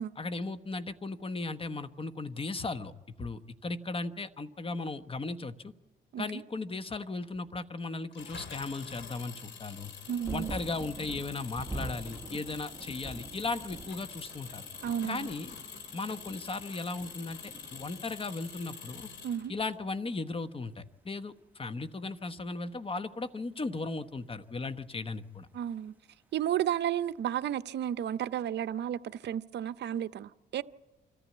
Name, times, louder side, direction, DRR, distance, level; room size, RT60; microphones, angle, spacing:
voice 1, 0.2-2.9 3.2-5.7 6.2-9.9 10.3-14.7 15.1-15.6 15.9-19.1 19.5-25.5, left 3 dB, 25° left, 1.1 m, -36 dB
Engine, 8.1-19.8, left 6 dB, 65° left, 2.6 m, -46 dB
sound 1, 9.7-18.7 19.0-19.9 20.8-20.9, right 2 dB, 10° right, 1.4 m, -46 dB
voice 2, 10.1-10.6 14.8-15.3 19.2-19.5 25.5-25.9 26.3-30.6, right 10 dB, 60° right, 0.6 m, -32 dB
25.5 x 14.0 x 8.6 m
cardioid pair, 90°, 20 cm